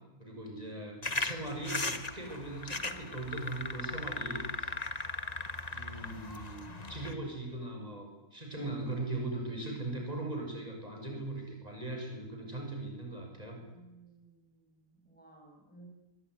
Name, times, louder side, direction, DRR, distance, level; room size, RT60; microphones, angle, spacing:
voice 1, 0.2-4.7 5.7-13.6, right 2 dB, 25° right, 1 dB, 7.4 m, -39 dB
sound 1, 1.0-7.1, left 3 dB, 25° left, 1.7 m, -38 dB
voice 2, 13.6-15.9, right 2 dB, 5° left, 0 dB, 6.7 m, -57 dB
24.0 x 23.5 x 9.8 m, 0.99 s
omnidirectional pair, 1.7 m